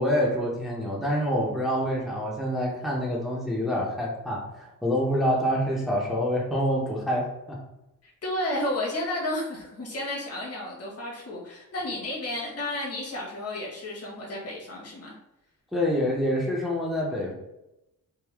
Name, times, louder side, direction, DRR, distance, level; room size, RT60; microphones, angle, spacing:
voice 1, 0.0-7.6 15.7-17.3, equal, ahead, -3 dB, 0.8 m, -26 dB
voice 2, 8.0-15.1, left 1 dB, 45° left, -3 dB, 1.4 m, -32 dB
3.5 x 2.2 x 3.4 m, 0.91 s
cardioid pair, 85°, 35 cm